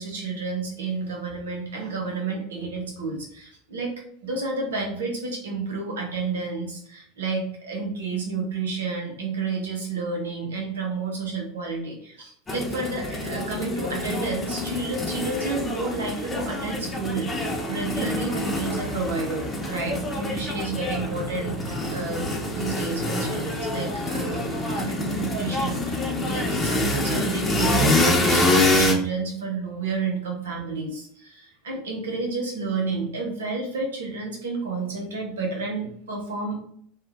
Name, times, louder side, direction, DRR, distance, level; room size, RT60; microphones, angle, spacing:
voice 1, 0.0-3.9 4.2-24.5 24.7-26.0 26.2-36.6, right 3 dB, 85° right, 1 dB, 0.9 m, -30 dB
sound 1, 12.5-28.9, left 1 dB, 20° left, 0.8 m, -26 dB
2.9 x 2.4 x 3.5 m, 0.63 s
hypercardioid pair, 85°, 0 cm